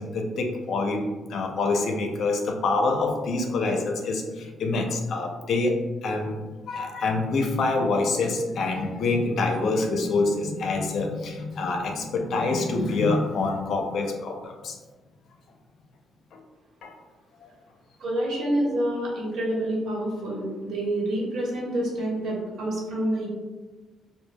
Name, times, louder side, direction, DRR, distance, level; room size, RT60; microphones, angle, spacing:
voice 1, 0.0-6.4 6.7-14.8 16.3-16.4 16.8-16.9 17.4-17.5, left 3 dB, 65° left, 2 dB, 0.5 m, -26 dB
voice 2, 18.0-23.3, right 1 dB, 70° right, -3 dB, 1.1 m, -27 dB
4.9 x 2.1 x 2.2 m, 1.3 s
cardioid pair, 90°, 0 cm